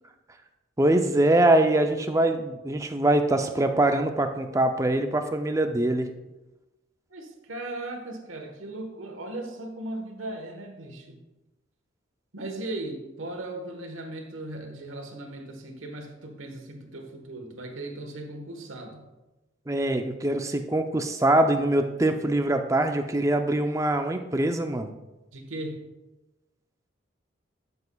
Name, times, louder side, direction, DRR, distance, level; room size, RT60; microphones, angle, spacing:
voice 1, 0.8-6.1 19.7-24.9, right 1 dB, 15° right, 6 dB, 0.5 m, -23 dB
voice 2, 7.1-11.2 12.3-19.1 25.3-25.8, right 2 dB, 85° right, 3 dB, 1.3 m, -37 dB
12.0 x 6.8 x 2.3 m, 1.0 s
head